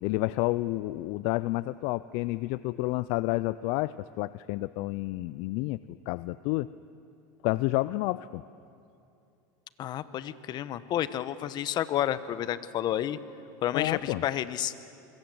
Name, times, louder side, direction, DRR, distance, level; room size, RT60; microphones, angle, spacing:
voice 1, 0.0-6.7 7.4-8.4 13.7-14.2, left 19 dB, 65° left, 17 dB, 0.5 m, -30 dB
voice 2, 9.8-13.2 13.6-14.7, left 11 dB, 45° left, 14 dB, 1.2 m, -30 dB
26.5 x 22.5 x 7.9 m, 2.6 s
supercardioid pair, 105°, 10 cm